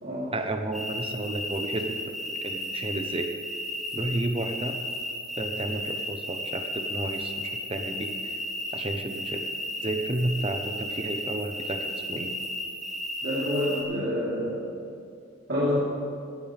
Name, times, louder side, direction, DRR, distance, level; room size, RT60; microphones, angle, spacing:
voice 1, 0.3-3.3 3.9-4.8 5.4-8.4 8.7-9.4 9.8-12.4, right 1 dB, 30° right, 6 dB, 1.0 m, -32 dB
sound 1, 0.7-13.8, left 1 dB, ahead, 3.2 m, -34 dB
voice 2, 13.2-14.7 15.5-15.7, left 1 dB, 60° right, -11 dB, 3.9 m, -28 dB
18.5 x 15.0 x 3.6 m, 2.4 s
head